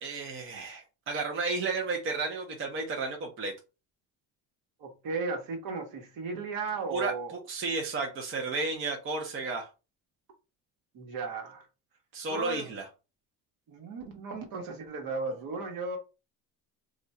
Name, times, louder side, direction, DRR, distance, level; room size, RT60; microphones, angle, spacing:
voice 1, 0.0-3.5 6.9-9.7 12.1-12.9, right 3 dB, 30° right, 0.7 m, -33 dB
voice 2, 4.8-7.3 10.9-11.6 12.3-12.7 13.7-16.0, right 4 dB, 60° right, 1.2 m, -35 dB
2.5 x 2.3 x 4.0 m
cardioid pair, 135°, 38 cm